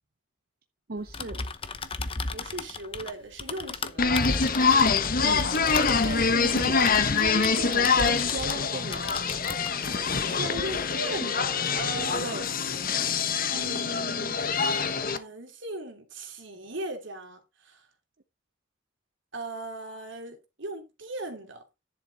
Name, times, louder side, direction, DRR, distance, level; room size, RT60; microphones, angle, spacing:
voice 1, 0.9-1.4 5.2-5.5 6.0-9.0 12.2-12.5, right 3 dB, 50° right, 0.8 m, -36 dB
Typing, 1.0-8.7 8.9-9.7, left 4 dB, 30° left, 0.8 m, -37 dB
voice 2, 2.0-4.4 7.5-7.6 10.2-12.4 13.5-14.4 15.1-17.8 19.3-21.6, right 2 dB, 65° right, 3.0 m, -38 dB
sound 1, 4.0-15.2, left 5 dB, 45° left, 1.1 m, -25 dB
10.5 x 6.9 x 3.9 m
head